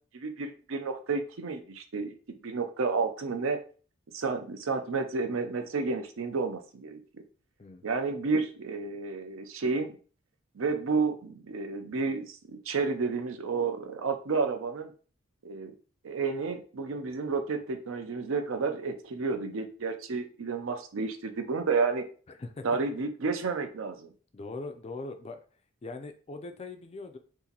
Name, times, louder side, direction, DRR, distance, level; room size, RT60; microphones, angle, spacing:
voice 1, 0.1-2.1 2.4-3.6 4.1-7.0 7.8-9.9 10.5-14.9 15.4-15.7 16.0-22.0 22.6-24.1, right 4 dB, 70° right, 7 dB, 0.5 m, -31 dB
voice 2, 22.3-22.6 24.3-25.4 25.8-27.2, left 3 dB, 30° left, 7 dB, 0.3 m, -41 dB
2.8 x 2.5 x 3.9 m, 0.40 s
head